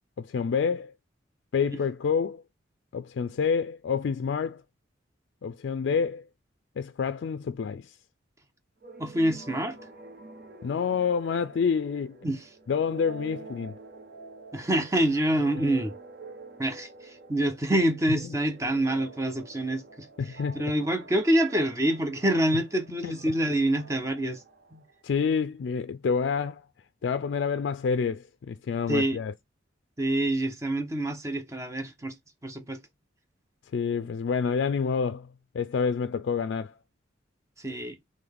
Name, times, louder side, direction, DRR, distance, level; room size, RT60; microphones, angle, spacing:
voice 1, 0.2-0.9 1.5-2.4 2.9-4.6 5.4-6.3 6.8-7.9 10.6-12.2 12.7-13.8 20.2-20.6 23.0-23.3 25.0-26.6 27.0-29.3 33.7-35.3 35.5-36.7, left 6 dB, 65° left, 0.3 m, -28 dB
sound 1, 8.8-25.2, right 2 dB, 50° right, 1.0 m, -47 dB
voice 2, 9.0-9.8 12.2-12.5 14.5-15.9 16.6-24.4 24.7-24.8 28.9-29.2 30.0-32.1 32.4-32.8 37.6-38.0, right 1 dB, 15° right, 0.6 m, -26 dB
3.9 x 3.1 x 3.4 m
head